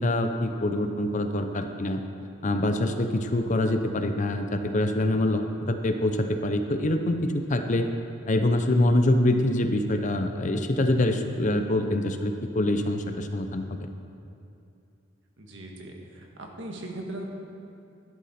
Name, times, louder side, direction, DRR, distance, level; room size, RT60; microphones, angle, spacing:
voice 1, 0.0-2.0 2.4-7.9 8.3-13.6, left 1 dB, 40° left, 7 dB, 0.7 m, -25 dB
voice 2, 15.4-15.9 16.4-17.2, right 1 dB, 70° right, 1 dB, 1.7 m, -38 dB
11.5 x 11.5 x 4.3 m, 2.7 s
head